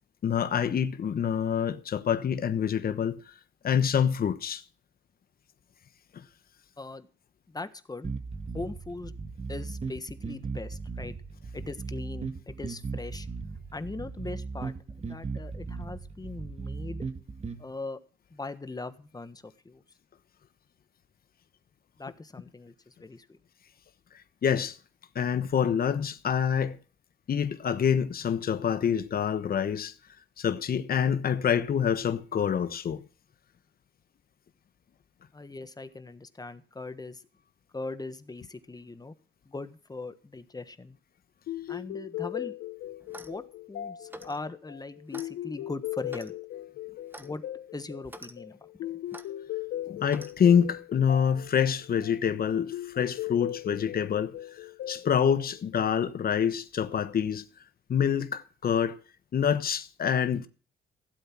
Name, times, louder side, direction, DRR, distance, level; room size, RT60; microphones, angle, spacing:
voice 1, 0.2-3.2 3.6-4.6 24.4-24.8 25.1-26.8 27.3-29.9 30.4-33.0 49.9-54.6 54.9-57.4 57.9-59.0 59.3-60.5, left 8 dB, 50° left, 1.1 m, -26 dB
voice 2, 6.8-7.1 7.5-8.1 8.5-9.1 9.5-11.1 11.5-13.3 13.7-17.1 17.6-18.0 18.3-19.8 22.0-23.4 35.3-37.2 37.7-39.1 39.4-41.0 41.7-42.5 43.2-46.3 47.2-47.4 47.7-48.9, left 3 dB, 20° left, 1.4 m, -40 dB
sound 1, 8.0-17.6, right 4 dB, 35° right, 2.0 m, -37 dB
sound 2, 41.5-56.2, left 13 dB, 85° left, 0.9 m, -38 dB
Clock, 43.0-43.4 44.1-44.4 45.1-45.3 46.1-46.4 47.1-47.3 48.0-48.3 49.1-49.3 50.1-50.3, right 1 dB, 10° right, 1.4 m, -46 dB
16.0 x 8.0 x 6.1 m
cardioid pair, 90°, 20 cm